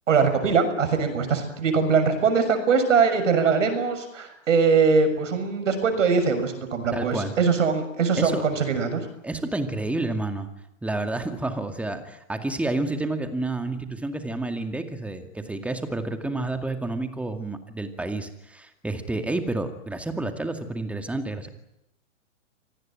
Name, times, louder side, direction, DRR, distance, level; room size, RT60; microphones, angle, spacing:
voice 1, 0.1-9.0, right 5 dB, 75° right, 8 dB, 6.7 m, -22 dB
voice 2, 6.9-7.3 8.2-8.4 9.2-10.5 10.8-21.5, right 2 dB, 5° right, 7 dB, 2.2 m, -29 dB
26.0 x 19.0 x 8.9 m, 0.84 s
hypercardioid pair, 130°, 38 cm